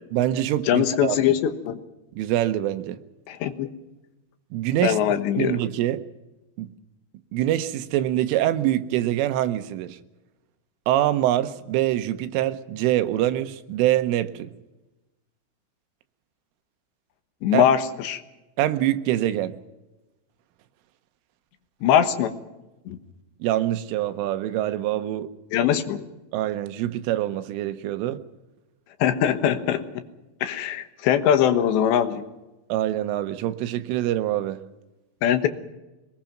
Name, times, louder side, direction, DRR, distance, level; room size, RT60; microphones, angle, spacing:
voice 1, 0.1-1.2 2.2-3.0 4.5-5.0 5.4-6.0 6.6-6.7 7.3-10.0 10.9-14.5 17.5-17.6 18.6-19.5 23.4-25.3 26.3-28.2 32.7-34.6, right 13 dB, 80° right, 3.5 m, -24 dB
voice 2, 0.7-1.8 3.3-3.7 4.8-5.6 17.4-18.2 21.8-22.3 22.9-23.0 25.5-26.0 29.0-29.8 30.4-32.2 35.2-35.5, left 10 dB, 70° left, 3.1 m, -21 dB
24.0 x 20.5 x 6.0 m
omnidirectional pair, 5.8 m